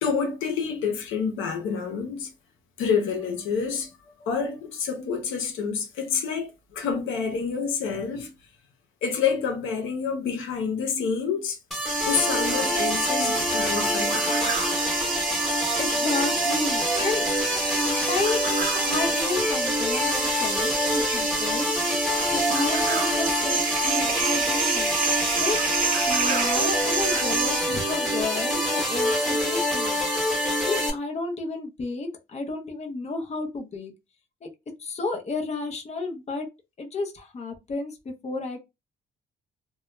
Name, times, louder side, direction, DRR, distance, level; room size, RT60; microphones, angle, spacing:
voice 1, 0.0-2.3 2.8-3.9 4.2-8.3 9.0-11.6 12.1-14.6, left 6 dB, 85° left, 0.7 m, -28 dB
sound 1, 11.7-30.9, equal, ahead, 1.0 m, -26 dB
sound 2, 11.9-27.6, right 5 dB, 45° right, 0.5 m, -29 dB
voice 2, 15.8-17.3 17.7-21.7 22.3-24.9 25.3-25.6 26.1-30.0 30.6-33.9 34.4-34.5 34.8-36.5 36.8-38.6, left 3 dB, 35° left, 0.7 m, -32 dB
2.2 x 2.1 x 3.0 m
cardioid pair, 90°, 20 cm